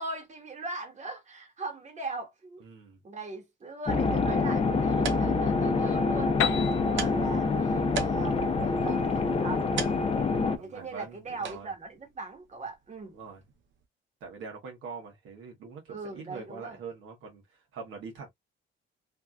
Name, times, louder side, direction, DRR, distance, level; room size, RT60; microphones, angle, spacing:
voice 1, 0.0-2.6 3.0-9.8 10.6-13.2 15.9-16.8, right 3 dB, 35° right, 1.4 m, -40 dB
voice 2, 2.6-3.0 10.0-11.7 13.1-13.4 14.2-18.3, right 5 dB, 90° right, 1.4 m, -44 dB
sound 1, 3.9-10.6, left 4 dB, 30° left, 0.6 m, -26 dB
sound 2, 4.6-13.8, right 6 dB, 70° right, 0.7 m, -42 dB
Piano, 6.4-10.1, left 11 dB, 80° left, 0.5 m, -35 dB
3.3 x 2.5 x 2.3 m
cardioid pair, 90°, 20 cm